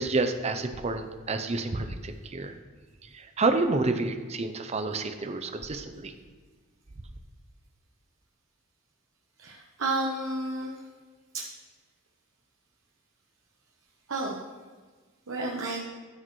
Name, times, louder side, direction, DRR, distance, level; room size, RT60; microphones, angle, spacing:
voice 1, 0.0-2.5 3.0-6.1, right 3 dB, 30° right, 8 dB, 0.6 m, -29 dB
voice 2, 9.4-10.7 11.3-11.4 14.1-14.4 15.3-15.8, right 2 dB, 90° right, -2 dB, 1.0 m, -31 dB
13.5 x 6.4 x 3.2 m, 1.5 s
head